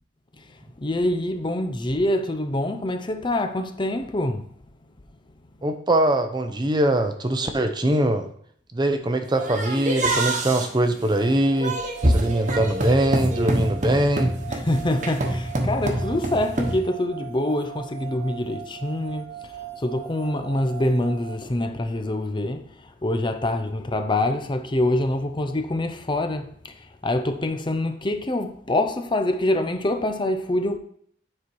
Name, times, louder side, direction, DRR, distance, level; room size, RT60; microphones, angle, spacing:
voice 1, 0.4-4.5 14.5-30.8, left 1 dB, 25° left, 0.7 m, -25 dB
voice 2, 5.6-8.3 8.7-11.8 12.1-14.3, right 1 dB, 25° right, 0.7 m, -22 dB
sound 1, 9.4-16.8, right 1 dB, 45° right, 1.2 m, -26 dB
sound 2, 11.1-21.4, right 12 dB, 65° right, 1.1 m, -40 dB
9.8 x 4.3 x 4.7 m
head